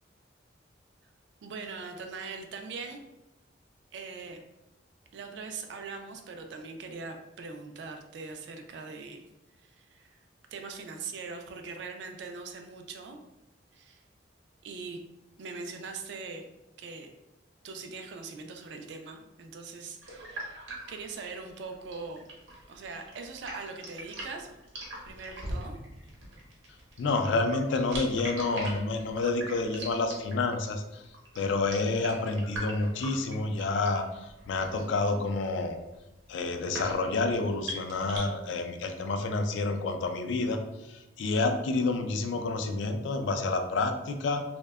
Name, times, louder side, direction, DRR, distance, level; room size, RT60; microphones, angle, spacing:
voice 1, 1.4-3.0 3.9-4.4 5.1-9.2 9.6-10.1 10.5-13.2 13.7-14.0 14.6-15.0 15.4-16.5 16.8-17.1 17.6-22.3 22.7-24.5 25.0-25.8 28.2-28.4 29.2-29.3 29.8-29.9, right 4 dB, 60° right, 5 dB, 0.3 m, -41 dB
sound 1, 20.0-38.2, right 1 dB, 85° right, 0.8 m, -42 dB
voice 2, 27.0-31.0 31.4-34.0 34.5-35.8 36.3-40.6 40.9-44.4, left 3 dB, 75° left, 6 dB, 0.3 m, -29 dB
2.6 x 2.1 x 2.2 m, 0.94 s
head